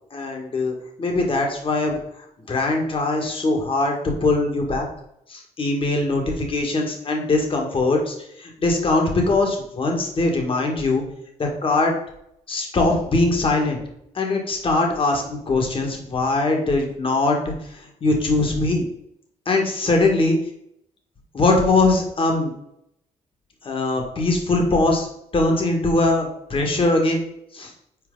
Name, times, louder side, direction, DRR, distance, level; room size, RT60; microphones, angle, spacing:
voice 1, 0.1-4.9 5.3-11.0 11.4-11.9 12.5-13.8 14.1-18.9 19.5-20.4 21.3-22.5 23.6-27.2 27.5-27.7, left 2 dB, 45° left, 2 dB, 2.0 m, -21 dB
7.8 x 4.7 x 3.9 m, 0.75 s
cardioid pair, 90°, 13 cm